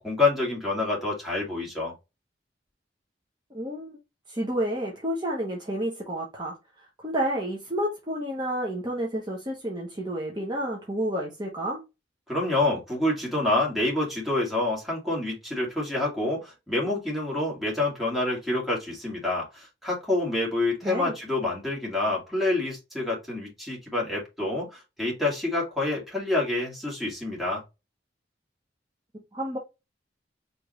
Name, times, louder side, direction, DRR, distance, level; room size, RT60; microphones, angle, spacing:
voice 1, 0.0-1.9 12.3-27.6, left 2 dB, ahead, 2.3 m, -27 dB
voice 2, 3.5-4.0 4.3-11.8 20.8-21.1 29.3-29.6, right 1 dB, 25° right, 1.1 m, -30 dB
5.0 x 3.4 x 3.1 m
head